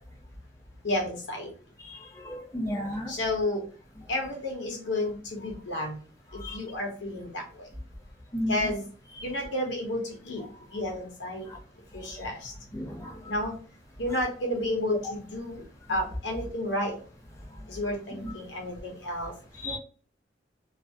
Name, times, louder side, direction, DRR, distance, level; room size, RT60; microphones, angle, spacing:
voice 1, 0.8-1.5 3.1-3.6 4.1-6.0 6.5-7.4 8.5-8.8 9.2-10.4 10.7-11.5 11.9-12.5 13.3-13.5 14.0-15.6 15.9-16.9 17.7-19.3, left 1 dB, 80° left, 1 dB, 0.8 m, -31 dB
voice 2, 2.2-3.1 6.4-6.6 8.3-8.5 12.7-13.1 18.2-18.3 19.6-19.8, left 1 dB, 15° left, 0 dB, 0.4 m, -32 dB
2.4 x 2.0 x 2.5 m, 0.41 s
head